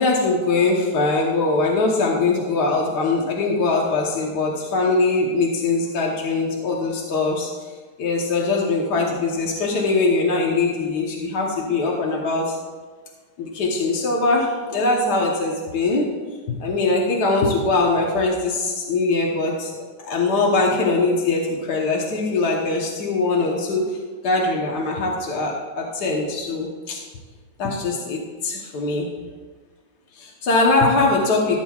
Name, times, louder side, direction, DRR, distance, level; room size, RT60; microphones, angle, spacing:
voice 1, 0.0-12.6 13.4-16.1 16.5-19.8 20.0-27.0 27.6-29.1 30.1-31.6, left 3 dB, 75° left, -2 dB, 1.7 m, -22 dB
15.5 x 7.7 x 2.4 m, 1.4 s
omnidirectional pair, 1.8 m